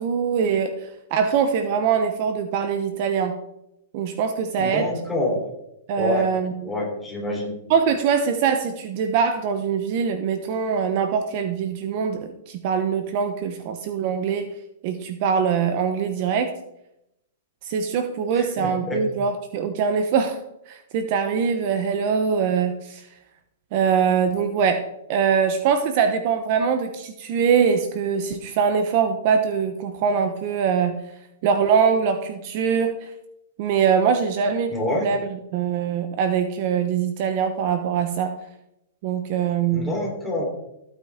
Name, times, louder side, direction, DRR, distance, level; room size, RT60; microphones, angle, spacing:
voice 1, 0.0-3.3 3.9-4.9 5.9-6.7 7.7-14.5 14.8-16.5 17.6-20.4 20.7-23.0 23.7-24.8 25.1-30.9 31.4-33.1 33.6-38.3 39.0-39.9, right 6 dB, 45° right, 7 dB, 1.0 m, -23 dB
voice 2, 4.6-5.4 6.0-6.3 6.6-7.5 18.4-19.0 34.7-35.1 39.7-40.4, left 1 dB, 5° left, -4 dB, 3.9 m, -26 dB
15.0 x 9.1 x 3.7 m, 0.85 s
hypercardioid pair, 155°, 0 cm